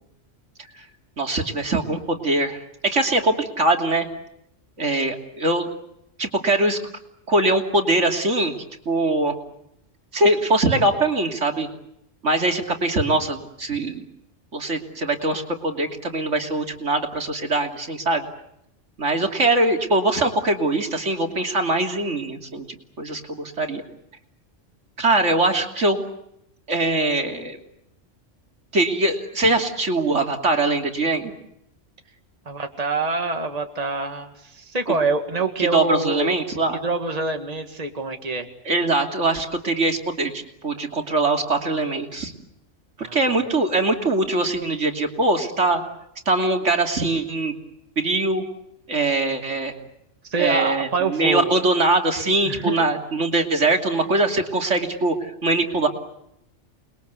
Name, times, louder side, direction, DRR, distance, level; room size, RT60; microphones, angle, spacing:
voice 1, 1.2-4.1 4.8-5.7 6.2-6.8 7.3-8.5 8.8-9.4 10.1-11.7 12.2-14.0 14.5-18.3 19.0-22.6 23.0-23.8 25.0-26.0 26.7-27.6 28.7-31.3 34.9-35.0 35.6-36.8 38.6-42.3 43.0-45.8 46.3-47.5 48.0-48.4 48.9-49.7 50.4-55.9, right 2 dB, 70° right, 4 dB, 3.2 m, -22 dB
voice 2, 32.5-36.4 36.8-38.5 43.0-43.3 50.2-51.5 52.4-52.9, right 3 dB, 30° right, 5 dB, 2.1 m, -26 dB
29.0 x 21.5 x 8.2 m, 0.81 s
omnidirectional pair, 1.3 m